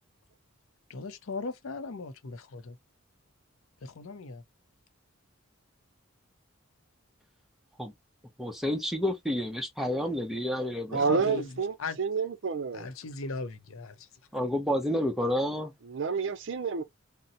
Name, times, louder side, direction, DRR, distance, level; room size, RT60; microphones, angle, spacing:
voice 1, 0.9-2.8 3.8-4.4 10.9-12.0 12.7-14.1, left 4 dB, 75° left, 0.6 m, -38 dB
voice 2, 8.4-11.4 14.3-15.7, left 1 dB, ahead, 0.5 m, -30 dB
voice 3, 10.9-12.9 15.9-16.8, right 5 dB, 60° right, 0.4 m, -29 dB
4.1 x 2.0 x 2.6 m
head